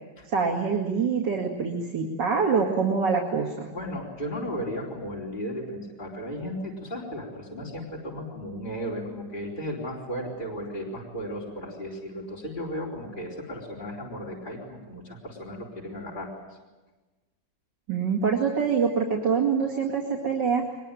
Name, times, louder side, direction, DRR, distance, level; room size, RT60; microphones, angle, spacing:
voice 1, 0.2-3.7 17.9-20.6, right 5 dB, 75° right, 0 dB, 2.9 m, -25 dB
voice 2, 3.7-16.3, equal, 25° left, -3 dB, 4.5 m, -35 dB
23.0 x 21.0 x 9.1 m, 1.2 s
omnidirectional pair, 1.9 m